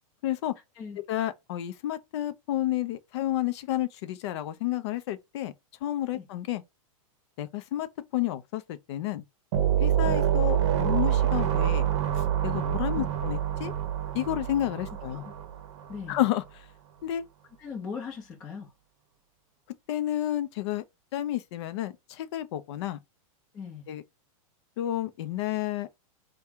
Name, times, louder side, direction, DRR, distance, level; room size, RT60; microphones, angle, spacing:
voice 1, 0.2-0.5 1.1-5.5 5.8-6.6 7.4-7.9 8.1-9.2 9.8-11.9 12.4-13.7 14.1-15.2 16.1-16.4 17.0-17.2 19.9-20.8 21.1-23.0 23.9-24.0 24.8-25.9, left 13 dB, 50° left, 0.6 m, -30 dB
sound 1, 9.5-16.0, right 10 dB, 55° right, 0.8 m, -26 dB
voice 2, 14.9-15.4 15.9-16.2 17.6-18.7 23.5-23.9, left 6 dB, 20° left, 0.9 m, -40 dB
4.4 x 2.3 x 3.6 m
supercardioid pair, 170°, 18 cm